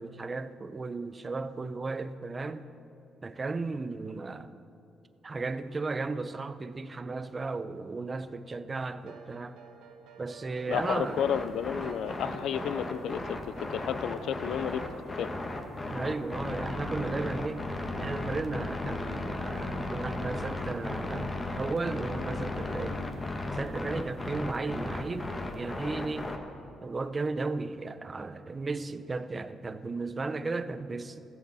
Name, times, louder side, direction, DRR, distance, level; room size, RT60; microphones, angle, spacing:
voice 1, 0.0-2.6 3.2-4.5 5.2-9.6 10.2-11.2 15.9-17.6 18.0-23.0 23.5-25.3 25.5-26.3 26.8-31.2, right 3 dB, 30° right, 12 dB, 0.6 m, -35 dB
sound 1, 8.9-20.9, right 4 dB, 85° right, 1.9 m, -52 dB
voice 2, 10.7-14.8 15.1-15.3, left 9 dB, 80° left, 15 dB, 0.4 m, -32 dB
sound 2, 10.7-26.4, left 2 dB, 25° left, 1.4 m, -35 dB
14.5 x 12.5 x 4.1 m, 2.7 s
cardioid pair, 90°, 0 cm